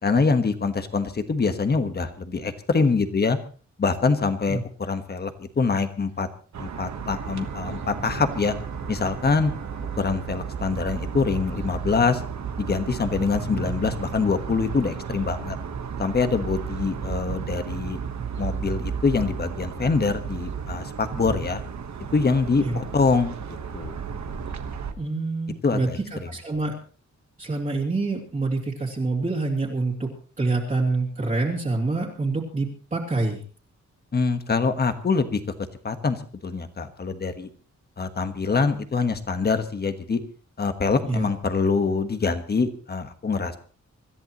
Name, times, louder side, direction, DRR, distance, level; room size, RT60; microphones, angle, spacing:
voice 1, 0.0-3.4 3.8-6.3 6.6-8.5 8.9-9.5 10.0-12.2 12.6-15.6 16.0-18.0 18.4-21.6 22.1-24.0 25.6-26.3 34.1-35.4 35.8-37.5 38.0-40.2 40.6-43.6, left 4 dB, 35° left, 8 dB, 1.4 m, -24 dB
sound 1, 6.5-24.9, right 6 dB, 70° right, 1.4 m, -33 dB
sound 2, 7.1-11.0, right 3 dB, ahead, 1.8 m, -55 dB
voice 2, 25.0-26.8 27.4-33.4 41.1-41.3, right 3 dB, 25° right, -3 dB, 2.8 m, -26 dB
25.5 x 14.0 x 3.1 m, 0.39 s
wide cardioid pair, 175°, 29 cm